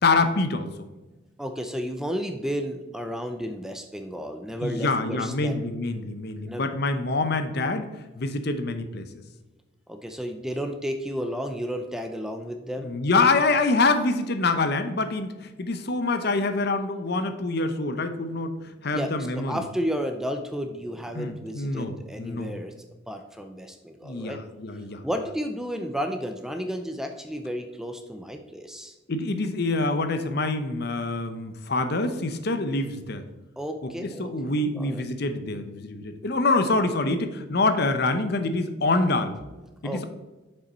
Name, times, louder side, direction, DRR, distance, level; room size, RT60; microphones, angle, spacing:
voice 1, 0.0-0.7 4.6-9.2 12.8-18.6 18.8-19.6 21.1-22.5 24.0-25.0 29.1-33.2 33.8-39.4 39.8-40.1, left 3 dB, 55° left, 9 dB, 0.7 m, -26 dB
voice 2, 1.4-5.6 6.5-6.6 9.9-12.9 18.9-24.4 25.0-29.0 33.6-35.0 39.8-40.0, equal, 5° right, 6 dB, 0.5 m, -32 dB
6.9 x 5.7 x 4.1 m, 1.1 s
head